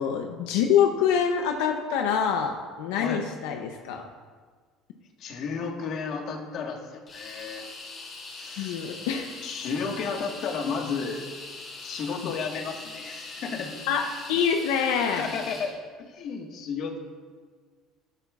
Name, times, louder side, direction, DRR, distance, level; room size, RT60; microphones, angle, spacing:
voice 1, 0.0-4.1 8.6-9.3 12.2-12.3 13.9-15.3, left 7 dB, 90° left, 4 dB, 0.7 m, -25 dB
voice 2, 5.2-7.6 8.3-8.8 9.4-11.3 11.8-13.7 14.0-14.2 15.1-15.7 16.1-17.0, left 5 dB, 55° left, 3 dB, 1.5 m, -33 dB
sound 1, 7.1-15.8, left 3 dB, 30° left, 3.2 m, -42 dB
12.5 x 12.0 x 2.4 m, 1.5 s
cardioid pair, 125°, 0 cm